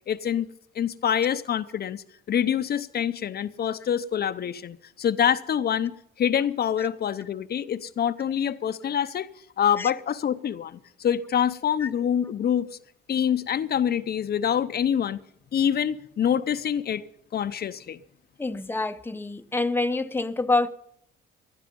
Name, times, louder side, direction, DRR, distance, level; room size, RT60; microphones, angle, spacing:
voice 1, 0.1-9.3 9.6-12.7 13.1-15.2 15.5-17.0 17.3-18.0, left 9 dB, 55° left, 0.7 m, -26 dB
voice 2, 18.4-20.7, left 3 dB, 10° left, 0.8 m, -26 dB
18.5 x 12.0 x 5.3 m
cardioid pair, 90°, 20 cm